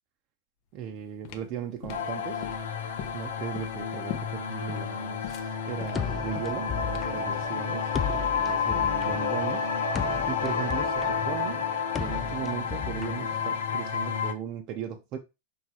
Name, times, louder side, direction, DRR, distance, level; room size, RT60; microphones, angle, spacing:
voice 1, 0.7-2.4 3.1-7.9 8.4-9.7 9.9-11.6 12.0-15.2, right 9 dB, 35° right, 0.8 m, -37 dB
sound 1, 0.8-7.3, left 9 dB, 40° left, 0.9 m, -42 dB
sound 2, 1.9-14.3, left 6 dB, 80° left, 1.3 m, -30 dB
sound 3, 5.9-13.9, left 6 dB, 15° left, 0.4 m, -36 dB
5.9 x 3.6 x 4.8 m
supercardioid pair, 165°, 0 cm